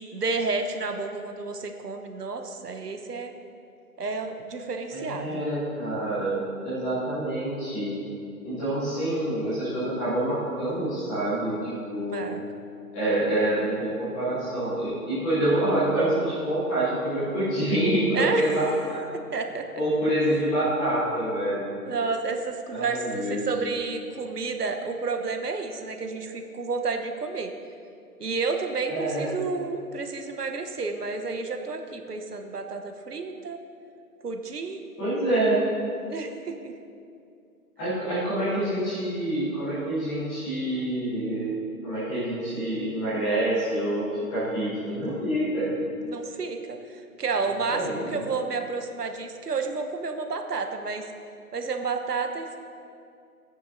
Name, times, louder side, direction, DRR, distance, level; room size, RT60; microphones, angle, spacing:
voice 1, 0.1-3.3 4.0-5.4 12.1-12.4 18.1-18.5 19.3-19.7 21.8-27.5 28.2-33.6 34.2-35.0 36.1-36.7 46.0-51.1 51.5-52.6, right 4 dB, 90° right, 5 dB, 1.1 m, -31 dB
voice 2, 4.9-7.9 8.4-11.6 11.9-12.2 12.9-19.0 19.7-21.7 22.7-23.4 28.9-29.3 35.0-35.6 37.8-41.5 41.8-45.7 47.7-48.2, right 1 dB, 5° left, -11 dB, 0.8 m, -26 dB
13.5 x 9.8 x 2.7 m, 2.5 s
figure-of-eight pair, 155°, 46 cm